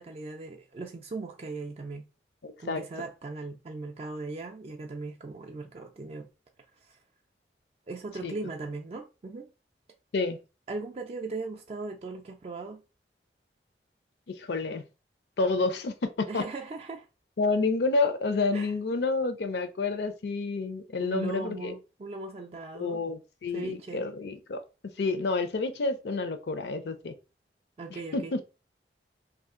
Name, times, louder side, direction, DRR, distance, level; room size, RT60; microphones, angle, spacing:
voice 1, 0.0-2.1 2.6-6.3 6.8-7.0 7.9-9.5 10.7-12.8 16.3-17.1 18.5-18.7 21.0-23.0 23.5-24.1 27.8-28.4, right 3 dB, 35° right, 0.3 m, -38 dB
voice 2, 2.4-2.8 8.2-8.3 10.1-10.4 14.4-14.8 15.4-16.4 17.4-21.7 22.8-24.6 25.0-27.1 28.1-28.4, left 3 dB, 70° left, 0.5 m, -29 dB
2.7 x 2.4 x 3.6 m
head